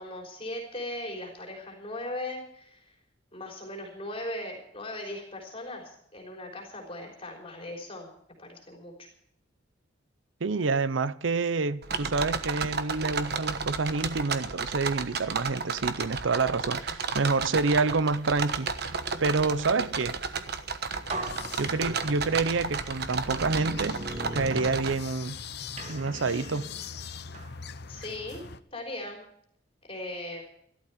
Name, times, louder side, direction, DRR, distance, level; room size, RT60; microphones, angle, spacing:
voice 1, 0.0-2.9 3.3-8.1 8.4-9.1 19.7-20.0 27.9-28.4 28.7-29.2 29.9-30.4, left 1 dB, 30° left, 3.8 m, -38 dB
voice 2, 10.4-18.7 19.2-20.2 21.6-24.1 24.3-25.4 25.9-26.7, right 4 dB, 75° right, 0.7 m, -28 dB
sound 1, 11.8-24.9, right 5 dB, 55° right, 1.2 m, -33 dB
sound 2, 20.6-20.7 21.1-22.4 23.0-25.4 25.8-27.6, right 2 dB, 35° right, 1.6 m, -39 dB
sound 3, 21.0-28.6, left 5 dB, 55° left, 0.8 m, -43 dB
14.5 x 12.5 x 5.8 m
head